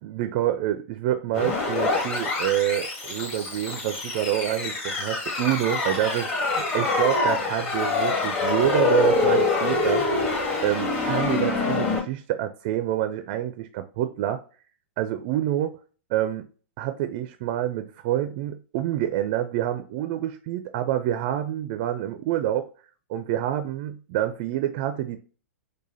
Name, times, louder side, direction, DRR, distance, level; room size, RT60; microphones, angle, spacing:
voice 1, 0.0-6.3 6.5-10.1 10.6-14.4 15.0-15.8 16.1-16.5 16.8-22.7 23.1-25.2, right 12 dB, 45° right, 0.4 m, -27 dB
sound 1, 1.3-12.0, left 3 dB, 35° left, 1.3 m, -25 dB
4.8 x 2.2 x 2.6 m
figure-of-eight pair, 105°, 7 cm